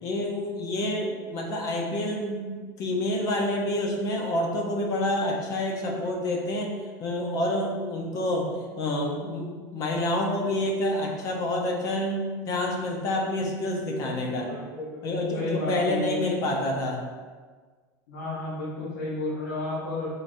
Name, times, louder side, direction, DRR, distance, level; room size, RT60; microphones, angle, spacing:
voice 1, 0.0-6.7 7.0-8.5 8.8-14.5 15.0-17.0, left 1 dB, 40° left, 0 dB, 0.6 m, -28 dB
voice 2, 14.5-15.0 15.3-16.2 18.1-20.1, left 2 dB, 85° left, -9 dB, 1.1 m, -32 dB
3.9 x 3.4 x 2.5 m, 1.5 s
supercardioid pair, 145°, 9 cm